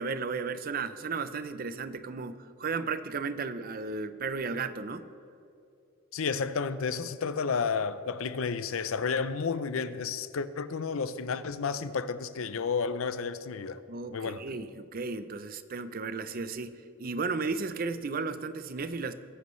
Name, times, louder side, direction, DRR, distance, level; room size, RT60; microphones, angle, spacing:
voice 1, 0.0-5.1 13.9-19.1, right 4 dB, 45° right, 0.5 m, -34 dB
voice 2, 6.1-13.8 14.1-14.4, left 5 dB, 75° left, 0.6 m, -31 dB
21.5 x 11.0 x 3.2 m
head